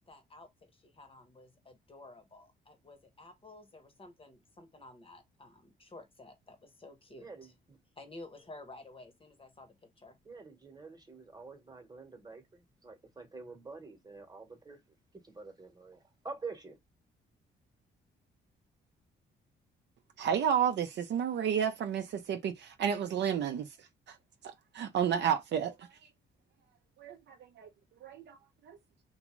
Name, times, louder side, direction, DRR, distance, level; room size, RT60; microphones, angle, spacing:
voice 1, 0.1-7.3 8.0-10.2, left 2 dB, 25° left, 0.8 m, -52 dB
voice 2, 7.2-7.8 10.2-14.8 15.2-16.8, right 4 dB, 20° right, 1.0 m, -47 dB
voice 3, 20.2-24.2 24.4-25.9 27.0-27.7 28.0-28.4 28.7-28.8, right 8 dB, 60° right, 0.5 m, -31 dB
2.5 x 2.2 x 3.0 m
cardioid pair, 90°, 20 cm